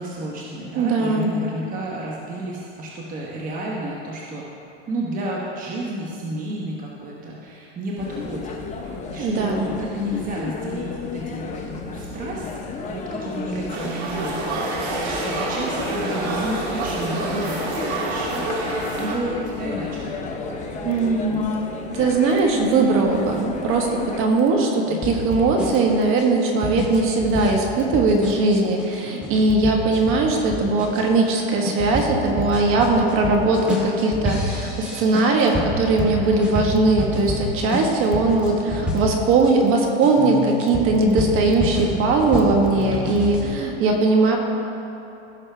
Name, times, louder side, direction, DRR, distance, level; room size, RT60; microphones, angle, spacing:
voice 1, 0.0-4.4 4.9-8.6 9.1-18.5 19.0-21.7 24.9-25.0, right 1 dB, 25° right, -3 dB, 1.0 m, -32 dB
voice 2, 0.7-1.4 9.2-9.7 20.8-21.5 21.9-44.4, right 3 dB, 40° right, 2 dB, 1.5 m, -20 dB
sound 1, 8.0-24.3, left 4 dB, 20° left, 0.8 m, -32 dB
sound 2, 13.7-19.2, right 2 dB, 80° right, 1.9 m, -27 dB
sound 3, 25.0-39.5 40.0-43.5, left 1 dB, 5° right, 2.0 m, -29 dB
16.0 x 6.3 x 3.4 m, 3.0 s
supercardioid pair, 135°, 32 cm